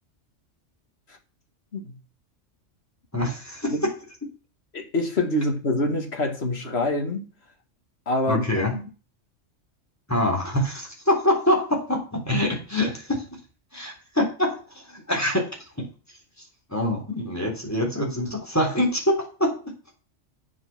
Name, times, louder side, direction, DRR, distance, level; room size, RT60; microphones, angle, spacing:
voice 1, 3.1-3.7 8.3-8.7 10.1-13.2 13.7-14.6 14.9-15.4 15.8-15.9 16.7-19.6, left 1 dB, 15° left, 3.5 m, -24 dB
voice 2, 4.7-7.3 8.1-8.5 8.7-8.8, left 1 dB, 60° left, 2.2 m, -26 dB
9.8 x 7.4 x 6.0 m
omnidirectional pair, 1.2 m